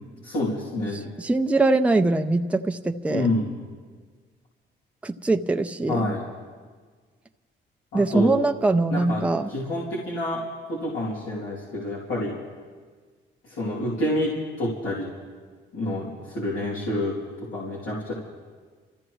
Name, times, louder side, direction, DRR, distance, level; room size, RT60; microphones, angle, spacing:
voice 1, 0.2-1.1 3.1-3.6 5.9-6.3 7.9-8.4 8.9-9.2 9.5-10.4 10.7-12.4 13.4-15.1 15.7-17.2 17.5-18.1, left 1 dB, 90° left, -7 dB, 2.9 m, -28 dB
voice 2, 1.2-3.3 5.0-6.1 7.9-9.5, right 2 dB, 5° right, 6 dB, 0.5 m, -22 dB
27.5 x 14.0 x 3.1 m, 1.5 s
cardioid pair, 90°, 20 cm